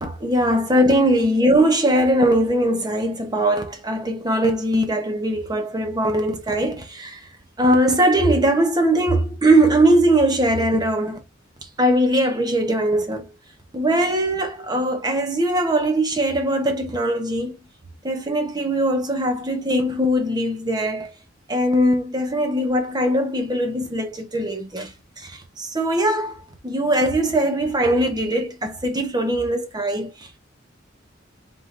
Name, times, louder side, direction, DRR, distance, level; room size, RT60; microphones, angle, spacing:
voice 1, 0.0-7.3 7.6-11.2 11.8-13.3 13.7-17.6 18.0-21.1 21.5-30.4, right 1 dB, 20° right, 1.0 m, -21 dB
4.8 x 3.7 x 2.6 m
head